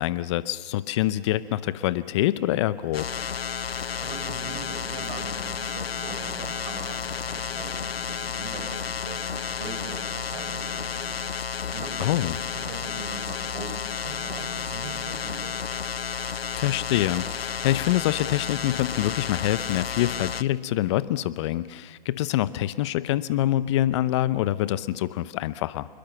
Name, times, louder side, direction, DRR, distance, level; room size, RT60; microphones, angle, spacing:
voice 1, 0.0-3.1 12.0-12.4 16.6-25.9, left 14 dB, 30° left, 16 dB, 0.8 m, -25 dB
sound 1, 2.9-20.4, left 7 dB, 80° left, 0.9 m, -32 dB
voice 2, 3.6-11.1 11.5-15.5, right 4 dB, 50° right, 5 dB, 5.8 m, -41 dB
28.0 x 21.5 x 6.9 m, 1.5 s
hypercardioid pair, 135°, 30 cm